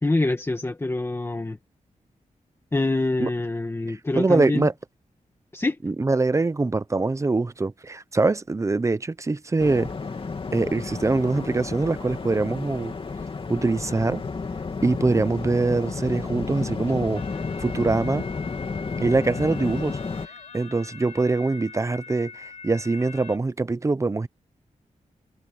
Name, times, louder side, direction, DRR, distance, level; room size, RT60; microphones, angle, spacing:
voice 1, 0.0-1.6 2.7-4.7 5.5-5.8, left 2 dB, 20° left, 2.0 m, -25 dB
voice 2, 3.9-4.7 5.8-9.9 10.5-12.9 13.5-14.2 14.8-17.2 17.6-18.3 19.0-20.0 20.5-24.3, right 3 dB, 20° right, 0.8 m, -23 dB
Waves surf, 9.6-20.3, left 4 dB, 40° left, 2.8 m, -32 dB
sound 1, 17.1-23.4, left 5 dB, 60° left, 3.6 m, -43 dB
wide cardioid pair, 145°, 14 cm